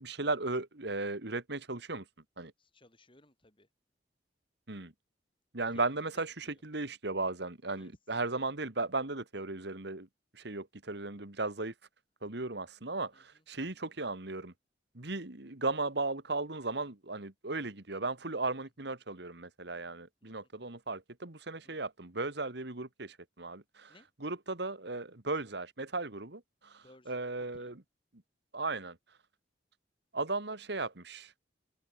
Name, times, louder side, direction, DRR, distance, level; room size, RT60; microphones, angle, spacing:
voice 1, 0.0-2.1 2.4-2.5 4.7-4.9 5.5-10.1 10.3-11.7 12.2-14.5 14.9-23.9 24.2-27.8 28.5-29.2 30.1-31.3, right 3 dB, 65° right, 2.2 m, -36 dB
voice 2, 2.6-3.7 5.7-5.9 6.2-6.6 7.7-7.9 13.1-13.4 20.2-20.3 21.6-21.8 23.9-24.1 26.8-27.7, left 1 dB, 30° left, 7.9 m, -60 dB
open air
head